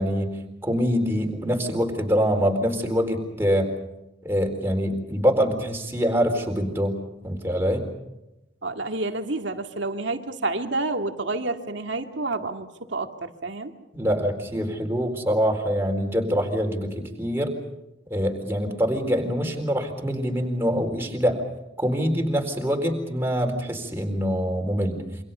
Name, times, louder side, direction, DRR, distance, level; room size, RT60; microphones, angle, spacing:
voice 1, 0.0-3.7 4.2-6.9 7.2-7.9 13.9-17.5 18.1-21.4 21.8-25.0, equal, 10° right, 2 dB, 4.1 m, -24 dB
voice 2, 8.6-13.7, right 2 dB, 70° right, 5 dB, 2.1 m, -29 dB
28.0 x 26.0 x 5.6 m, 0.93 s
head